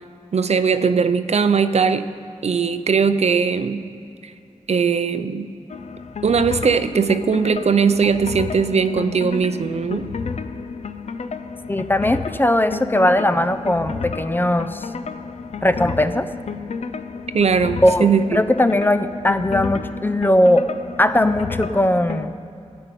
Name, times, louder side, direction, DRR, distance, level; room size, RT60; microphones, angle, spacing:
voice 1, 0.3-2.1 2.4-3.8 4.2-4.3 4.7-5.5 6.2-10.1 17.3-18.4, right 5 dB, 60° right, 11 dB, 0.5 m, -19 dB
sound 1, 5.7-22.3, left 5 dB, 65° left, 0.5 m, -31 dB
voice 2, 11.7-14.8 15.6-16.3 17.8-20.7 21.0-22.3, left 1 dB, 15° left, 11 dB, 0.4 m, -19 dB
16.0 x 5.4 x 9.0 m, 2.6 s
wide cardioid pair, 115°, 12 cm